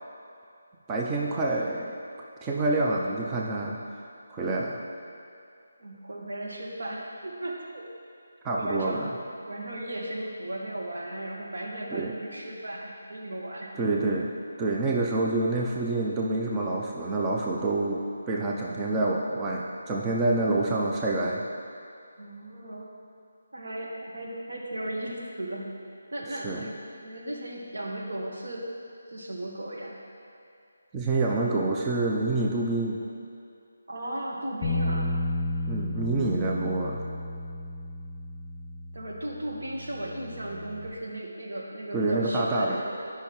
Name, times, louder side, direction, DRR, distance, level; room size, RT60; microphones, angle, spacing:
voice 1, 0.9-2.0 2.4-3.8 4.3-4.8 8.4-9.1 11.9-12.2 13.7-14.3 14.6-21.4 26.3-26.7 30.9-33.0 35.7-37.0 41.9-42.8, right 2 dB, 15° right, -3 dB, 0.4 m, -27 dB
voice 2, 5.8-7.8 8.5-9.1 9.4-13.7 22.2-22.9 23.5-25.7 26.1-28.7 29.1-30.0 33.9-35.2 38.9-43.0, right 1 dB, 75° right, -2 dB, 1.3 m, -36 dB
Bass guitar, 34.6-40.9, left 2 dB, 20° left, 1.2 m, -33 dB
10.0 x 5.6 x 3.0 m, 2.4 s
figure-of-eight pair, 165°, 0 cm